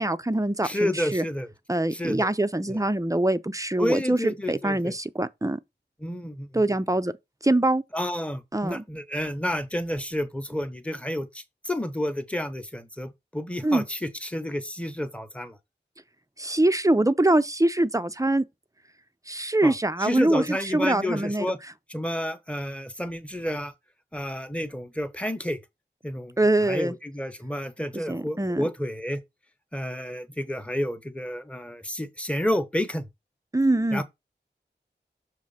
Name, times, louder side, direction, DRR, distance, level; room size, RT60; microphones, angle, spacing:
voice 1, 0.0-1.2 1.7-5.6 6.5-7.1 7.4-7.8 8.5-8.8 13.6-13.8 16.4-18.4 19.3-21.5 26.4-27.0 27.9-28.7 33.5-34.0, right 1 dB, 15° right, 0.5 m, -24 dB
voice 2, 0.6-1.5 1.9-2.3 2.7-2.8 3.8-4.9 6.0-6.6 7.9-15.6 19.6-19.7 20.0-21.6 21.9-23.7 24.1-25.6 26.0-29.2 29.7-33.1 33.9-34.0, equal, 5° left, 0.9 m, -30 dB
6.4 x 3.1 x 5.6 m
wide cardioid pair, 70°, 19 cm